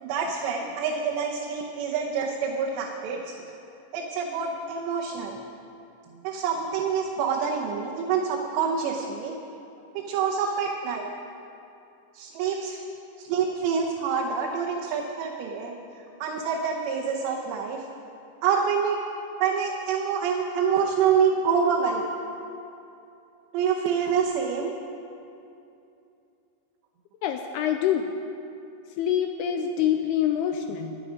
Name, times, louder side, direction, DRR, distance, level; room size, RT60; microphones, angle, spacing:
voice 1, 0.0-3.3 3.9-5.4 6.2-9.4 9.9-11.1 12.1-12.8 13.2-15.8 16.2-17.8 18.4-19.0 19.4-22.0 23.5-24.7, right 6 dB, 80° right, -1 dB, 3.1 m, -26 dB
voice 2, 27.2-28.1 29.0-31.0, left 9 dB, 85° left, 5 dB, 2.4 m, -26 dB
24.5 x 8.3 x 5.0 m, 2.7 s
omnidirectional pair, 5.1 m